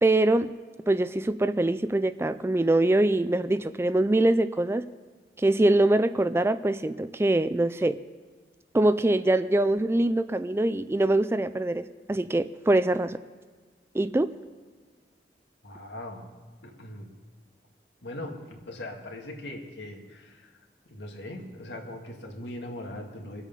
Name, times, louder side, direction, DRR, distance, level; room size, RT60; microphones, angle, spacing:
voice 1, 0.0-0.5 0.9-4.9 5.4-8.0 8.7-13.2 13.9-14.3, right 2 dB, 15° right, 13 dB, 0.3 m, -23 dB
voice 2, 15.6-16.3 16.6-17.1 18.0-20.6 20.9-23.4, left 1 dB, 85° left, 1 dB, 2.2 m, -40 dB
24.0 x 8.2 x 5.4 m, 1.4 s
head